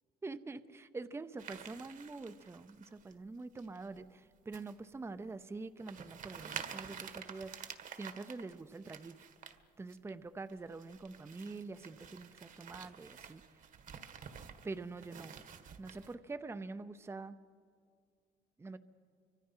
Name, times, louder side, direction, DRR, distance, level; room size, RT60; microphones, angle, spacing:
voice 1, 0.2-9.2 9.8-13.4 14.6-15.3 15.8-17.4 18.6-18.8, right 3 dB, 15° right, 12 dB, 0.7 m, -45 dB
sound 1, 1.4-3.1 3.6-4.0 4.5-4.8 5.2-5.3 5.8-9.6 9.9-10.1 10.5-16.1, right 7 dB, 50° right, 1.5 m, -49 dB
29.5 x 25.0 x 5.7 m, 2.1 s
cardioid pair, 110°, 17 cm